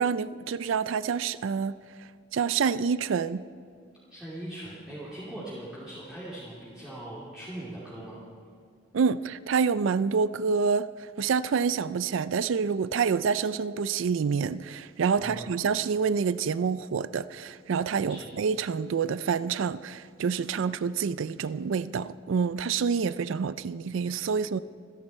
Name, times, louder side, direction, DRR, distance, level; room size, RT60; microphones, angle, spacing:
voice 1, 0.0-1.7 2.3-3.4 8.9-10.9 11.2-24.6, right 6 dB, 80° right, 0.4 m, -27 dB
voice 2, 4.1-8.2 15.2-15.5 18.1-18.3, right 1 dB, 5° right, 2.9 m, -40 dB
26.0 x 10.5 x 4.4 m
head